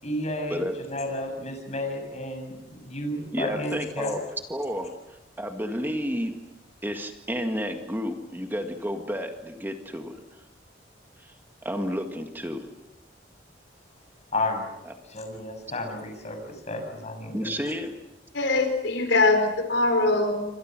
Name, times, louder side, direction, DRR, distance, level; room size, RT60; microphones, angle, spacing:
voice 1, 0.0-4.1 14.3-14.7 15.1-17.5, left 1 dB, 40° left, 4 dB, 7.2 m, -32 dB
voice 2, 3.3-4.2 4.5-4.9 5.4-6.4 6.8-10.2 11.2-11.3 11.6-12.7 14.9-15.0 17.3-17.9, equal, 10° right, 5 dB, 1.9 m, -31 dB
voice 3, 18.3-20.5, left 2 dB, 80° left, 6 dB, 4.7 m, -22 dB
28.0 x 25.5 x 6.2 m, 0.96 s
head